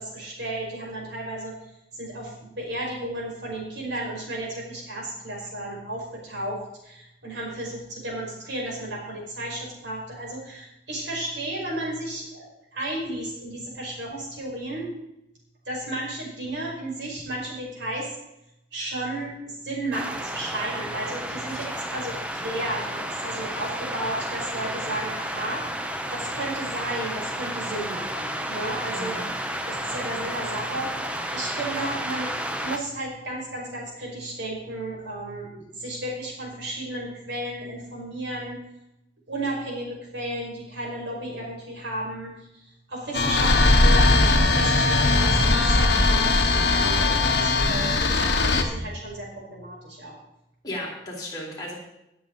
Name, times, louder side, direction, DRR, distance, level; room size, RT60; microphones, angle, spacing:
voice 1, 0.0-1.6 1.9-14.9 15.7-18.1 18.7-25.6 26.1-29.2 29.7-32.3 32.6-38.6 39.3-50.2, right 1 dB, 75° right, -3 dB, 5.3 m, -33 dB
sound 1, 19.9-32.8, right 1 dB, 5° right, 0.8 m, -32 dB
voice 2, 28.9-29.3 50.6-51.7, left 1 dB, 20° left, -4 dB, 3.9 m, -34 dB
sound 2, 43.1-48.6, left 3 dB, 60° left, 1.3 m, -19 dB
18.0 x 8.6 x 4.0 m, 0.85 s
head